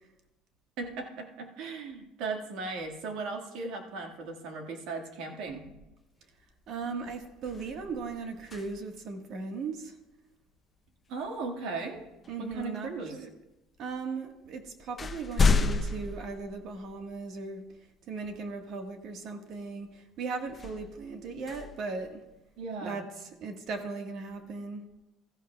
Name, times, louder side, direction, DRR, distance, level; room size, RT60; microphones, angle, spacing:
voice 1, 0.8-5.6 11.1-12.0 12.4-13.2 22.6-23.0, right 3 dB, 70° right, 3 dB, 1.7 m, -37 dB
sound 1, 6.4-6.7 7.0-9.1 11.3-11.4 12.2-13.0 13.9-14.0 14.4-17.2 17.8-17.9 20.5-22.6, left 4 dB, 25° left, 0.6 m, -32 dB
voice 2, 6.7-10.0 12.3-13.3 13.8-17.6 18.1-22.2 22.8-24.9, right 4 dB, 55° right, 5 dB, 1.4 m, -38 dB
16.0 x 13.5 x 2.3 m, 1.0 s
cardioid pair, 130°, 0 cm